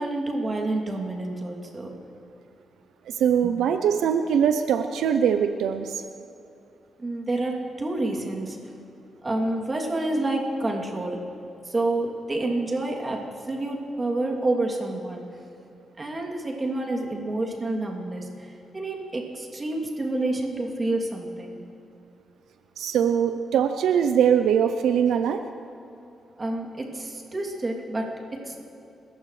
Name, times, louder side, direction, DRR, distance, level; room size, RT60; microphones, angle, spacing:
voice 1, 0.0-2.0 3.4-3.5 7.0-8.7 9.2-11.3 11.6-15.2 16.0-21.6 26.4-28.6, right 2 dB, 30° right, -1 dB, 2.9 m, -29 dB
voice 2, 3.1-6.0 22.8-25.4, right 8 dB, 90° right, 8 dB, 0.6 m, -22 dB
29.0 x 14.5 x 3.3 m, 2.7 s
cardioid pair, 95°, 0 cm